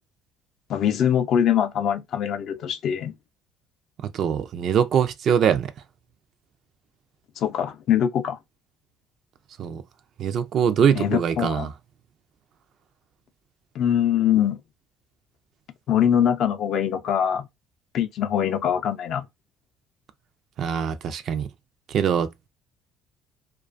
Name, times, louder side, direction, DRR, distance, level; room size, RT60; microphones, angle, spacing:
voice 1, 0.7-3.1 7.4-8.4 10.9-11.7 13.7-14.6 15.9-17.5 17.9-19.3, left 9 dB, 60° left, 0.4 m, -23 dB
voice 2, 4.1-5.7 9.6-9.8 10.2-11.7 20.6-21.5 21.9-22.3, right 8 dB, 55° right, 0.4 m, -23 dB
2.4 x 2.2 x 2.4 m
supercardioid pair, 85°, 0 cm